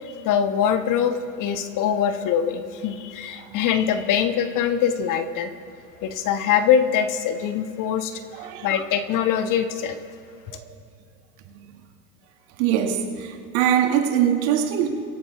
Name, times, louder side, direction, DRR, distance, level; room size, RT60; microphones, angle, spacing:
voice 1, 0.2-5.5 6.0-8.2 8.6-10.0, left 8 dB, 40° left, 1.3 m, -23 dB
voice 2, 8.3-8.7 10.5-10.7 11.5-11.7 12.6-14.9, right 9 dB, 55° right, 2.1 m, -23 dB
24.0 x 11.5 x 3.5 m
hypercardioid pair, 85°, 48 cm